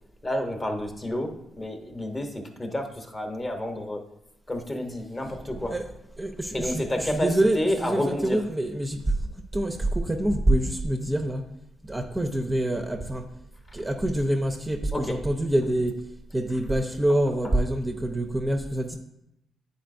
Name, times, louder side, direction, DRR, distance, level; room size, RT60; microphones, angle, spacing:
voice 1, 0.2-4.0 4.5-5.7 6.5-7.3 7.5-8.4 14.9-15.2, left 1 dB, 25° left, 4 dB, 0.9 m, -30 dB
voice 2, 5.3-5.9 6.2-11.5 11.8-13.3 13.7-19.0, right 1 dB, 15° right, 3 dB, 0.5 m, -26 dB
9.1 x 4.0 x 2.5 m, 0.84 s
cardioid pair, 90°, 0 cm